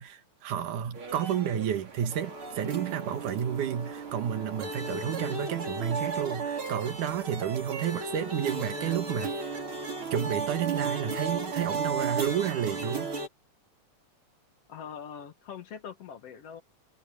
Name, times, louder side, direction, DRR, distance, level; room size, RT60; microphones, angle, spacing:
voice 1, 0.0-9.6 10.1-13.1, right 9 dB, 85° right, 3.0 m, -31 dB
sound 1, 0.9-13.3, right 4 dB, 45° right, 3.9 m, -35 dB
voice 2, 14.7-16.6, left 7 dB, 60° left, 2.1 m, -42 dB
omnidirectional pair, 3.5 m